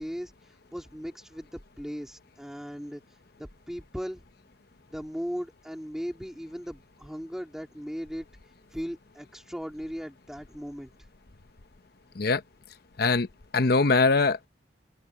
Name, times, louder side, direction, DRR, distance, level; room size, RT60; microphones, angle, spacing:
voice 1, 0.0-3.0 3.4-4.2 4.9-8.3 8.7-10.9, equal, 5° right, 3.0 m, -37 dB
voice 2, 13.0-13.3 13.5-14.5, left 3 dB, 55° left, 0.9 m, -22 dB
open air
head